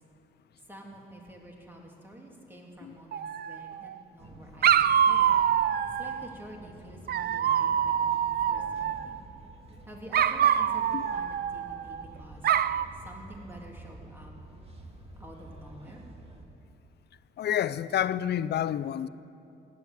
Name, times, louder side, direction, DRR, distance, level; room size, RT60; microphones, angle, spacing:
voice 1, 0.7-5.4 5.8-9.2 9.9-12.5 12.9-14.3 15.2-16.0, right 1 dB, 10° right, 2.9 m, -48 dB
Dog, 3.1-3.9 4.6-6.3 7.1-9.2 10.1-12.0 12.4-12.9, right 9 dB, 50° right, 0.5 m, -25 dB
sound 1, 4.2-16.4, right 2 dB, 30° right, 2.1 m, -49 dB
voice 2, 17.4-19.1, left 10 dB, 55° left, 0.5 m, -29 dB
16.0 x 10.5 x 7.9 m
cardioid pair, 90°, 20 cm